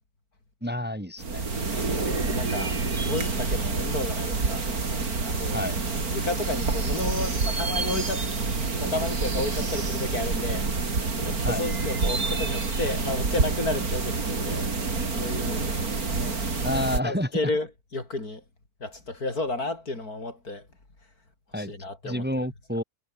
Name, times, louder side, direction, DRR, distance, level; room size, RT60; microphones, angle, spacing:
voice 1, 0.6-1.5 5.5-5.8 11.5-11.6 16.6-17.3 21.5-21.7 22.0-22.8, left 1 dB, 5° right, 2.4 m, -29 dB
sound 1, 1.2-17.0, right 4 dB, 65° right, 3.7 m, -27 dB
voice 2, 1.7-4.7 5.3-5.6 6.1-8.3 8.8-14.8 15.1-15.7 16.2-18.4 18.8-20.7 21.6-22.3, left 2 dB, 65° left, 5.6 m, -32 dB
omnidirectional pair, 1.7 m